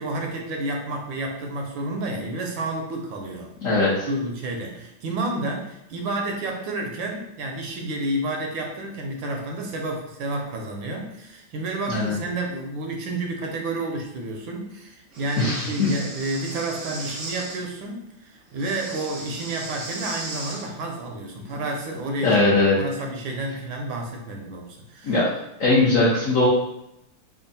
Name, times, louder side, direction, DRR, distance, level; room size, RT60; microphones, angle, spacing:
voice 1, 0.0-3.5 4.1-25.2, right 2 dB, 75° right, 1 dB, 1.2 m, -30 dB
voice 2, 3.6-4.1 11.9-12.1 15.4-15.9 22.2-22.8 25.0-25.3 25.6-26.5, left 2 dB, 60° left, -8 dB, 0.8 m, -20 dB
Breathing, 15.1-17.6 18.5-20.7, right 2 dB, 60° right, 0.8 m, -36 dB
3.6 x 2.3 x 4.0 m, 0.84 s
omnidirectional pair, 2.3 m